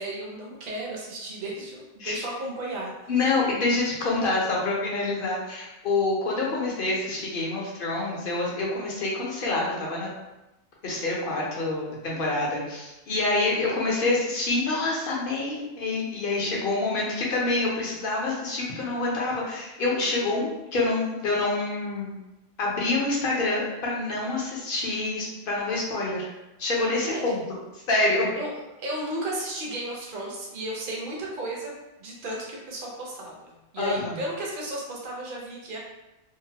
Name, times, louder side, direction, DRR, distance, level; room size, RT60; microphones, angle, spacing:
voice 1, 0.0-3.1 27.0-27.3 28.4-28.5 28.8-31.7 32.0-35.8, right 1 dB, 50° right, -3 dB, 0.8 m, -34 dB
voice 2, 3.1-10.1 10.8-22.2 22.6-26.3 26.6-27.4 27.7-28.3 33.8-34.2, left 2 dB, 55° left, -3 dB, 0.8 m, -27 dB
2.8 x 2.2 x 2.8 m, 0.99 s
omnidirectional pair, 1.2 m